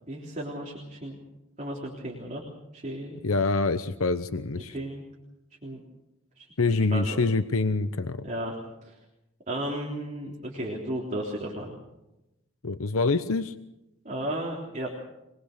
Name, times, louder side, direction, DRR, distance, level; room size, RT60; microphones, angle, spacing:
voice 1, 0.1-1.2 1.6-2.4 2.7-3.2 4.6-5.0 5.6-5.8 6.4-6.5 6.9-7.2 8.2-8.5 8.8-9.0 9.5-11.8 14.1-14.9, right 1 dB, 35° right, -1 dB, 3.6 m, -34 dB
voice 2, 3.2-4.7 6.6-8.2 12.6-13.5, left 3 dB, 85° left, 11 dB, 0.9 m, -25 dB
24.5 x 20.5 x 6.7 m, 0.91 s
head